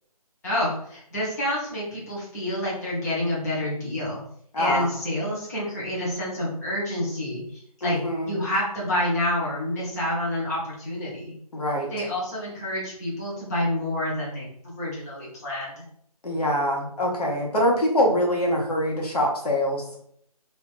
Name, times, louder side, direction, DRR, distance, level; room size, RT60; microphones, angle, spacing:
voice 1, 0.4-4.2 4.6-8.0 8.3-11.3 11.9-15.8, left 1 dB, 25° left, -7 dB, 1.1 m, -28 dB
voice 2, 4.5-4.9 7.8-8.4 11.5-12.0 16.2-19.8, equal, 80° left, -1 dB, 1.2 m, -24 dB
2.8 x 2.4 x 3.5 m, 0.68 s
figure-of-eight pair, 165°, 20 cm